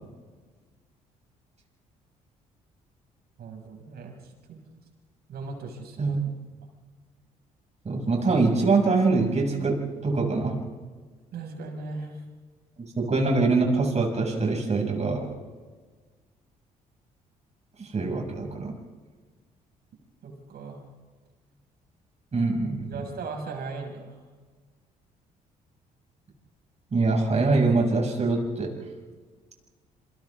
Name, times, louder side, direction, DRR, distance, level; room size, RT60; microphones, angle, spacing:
voice 1, 3.4-4.6 5.3-6.2 6.6-6.7 11.3-12.2 18.0-18.1 20.2-20.8 22.9-24.2, right 3 dB, 60° right, 2 dB, 6.4 m, -38 dB
voice 2, 7.8-10.5 13.0-15.3 17.8-18.7 22.3-22.8 26.9-28.7, right 3 dB, 40° right, 0 dB, 6.6 m, -24 dB
28.5 x 26.5 x 3.7 m, 1.4 s
hypercardioid pair, 50°, 18 cm